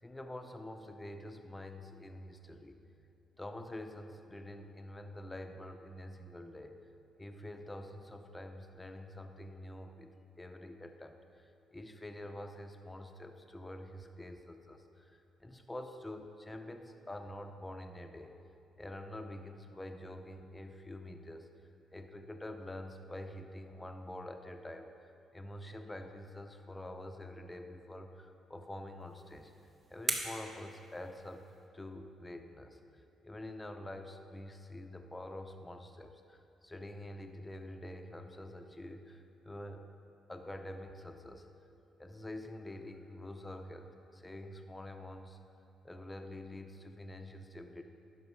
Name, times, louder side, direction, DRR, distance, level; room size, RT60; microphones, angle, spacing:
voice 1, 0.0-2.8 3.4-6.8 7.2-10.1 10.4-18.4 18.8-21.5 21.9-24.9 25.3-29.5 29.9-31.5 31.7-32.8 33.2-39.9 40.3-41.5 42.0-45.4 45.8-47.8, left 1 dB, 15° left, 6 dB, 0.7 m, -46 dB
sound 1, 29.0-31.7, right 2 dB, 40° right, 1.2 m, -41 dB
11.0 x 5.9 x 4.7 m, 2.8 s
cardioid pair, 90°, 0 cm